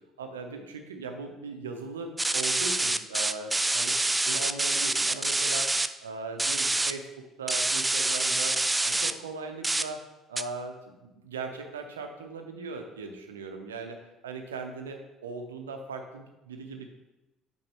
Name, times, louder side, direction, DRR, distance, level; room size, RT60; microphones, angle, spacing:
voice 1, 0.2-4.0 4.2-5.7 6.0-10.0 10.3-16.9, right 4 dB, 75° right, 5 dB, 0.7 m, -39 dB
sound 1, 2.2-5.9 6.4-6.9 7.5-9.1 9.6-9.8 10.4-10.5, right 2 dB, 15° right, 0.3 m, -26 dB
8.6 x 4.5 x 3.2 m, 1.0 s
figure-of-eight pair, 55°, 0 cm